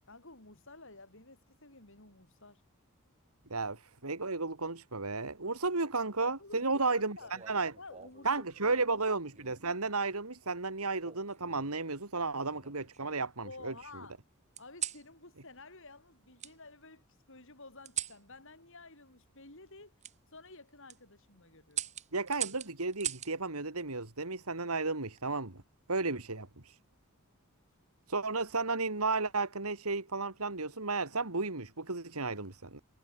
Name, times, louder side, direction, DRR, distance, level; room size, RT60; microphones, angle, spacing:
voice 1, 0.1-2.6 6.4-7.3 7.8-9.0 13.4-14.2 14.6-19.9 20.3-21.8, left 3 dB, 60° left, 7.1 m, -52 dB
voice 2, 3.5-7.2 7.5-7.7 8.2-13.7 22.1-25.6 25.9-26.8 28.1-32.8, right 3 dB, 80° right, 2.8 m, -33 dB
sound 1, 7.2-8.3 9.3-9.8 11.0-11.8 12.4-13.3 14.6-15.1 16.4-16.5 17.8-18.2 20.0-20.2 20.7-21.0 21.7-23.3 24.8-25.2, right 10 dB, 30° right, 1.4 m, -41 dB
head